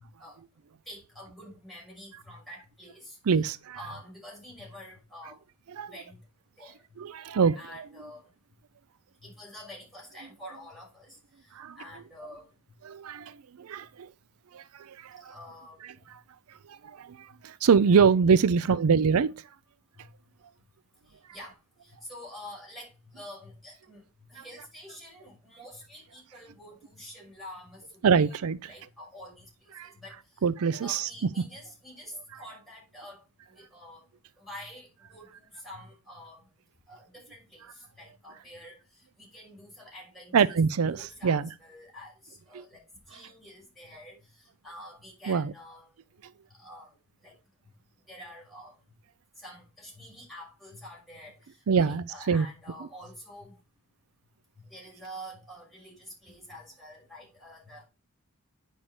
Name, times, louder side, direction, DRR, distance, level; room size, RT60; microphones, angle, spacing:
voice 1, 0.9-3.4 3.7-5.4 5.8-6.2 6.6-6.8 7.5-8.3 9.2-12.5 15.2-15.9 20.0-20.1 21.3-21.6 21.8-24.0 24.3-28.3 28.7-29.5 29.8-30.4 30.8-33.2 33.6-34.0 34.4-36.4 36.9-38.8 39.2-40.6 40.8-45.9 46.6-47.0 47.2-47.3 48.1-48.8 49.4-53.6 54.6-57.9, left 1 dB, ahead, 5.9 m, -47 dB
voice 2, 3.2-3.9 5.7-6.0 6.6-6.7 7.0-8.1 10.2-10.6 11.5-11.9 12.8-14.1 14.5-15.3 15.8-16.2 16.7-19.3 24.4-24.5 28.0-28.7 29.7-31.5 32.3-32.4 40.3-41.5 42.5-42.6 45.3-45.5 51.7-52.5 52.8-52.9, right 6 dB, 75° right, 0.4 m, -25 dB
8.7 x 5.6 x 4.9 m
head